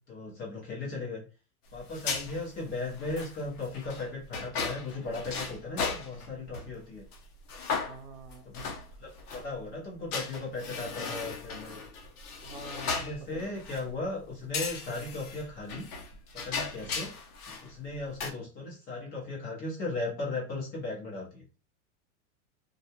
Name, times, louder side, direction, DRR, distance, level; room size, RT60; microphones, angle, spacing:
voice 1, 0.1-1.2 1.7-7.0 8.4-8.6 9.0-11.8 12.7-15.9 16.3-17.1 17.5-21.4, left 2 dB, 20° left, -4 dB, 0.7 m, -37 dB
sound 1, 1.8-6.7 7.1-7.2 7.5-9.5 10.1-13.9 14.5-17.7 18.0-18.3, left 5 dB, 80° left, 0.7 m, -36 dB
voice 2, 7.8-8.5 12.4-13.6 16.7-17.0, right 4 dB, 70° right, 6 dB, 0.7 m, -47 dB
2.4 x 2.0 x 2.7 m, 0.33 s
supercardioid pair, 160°, 44 cm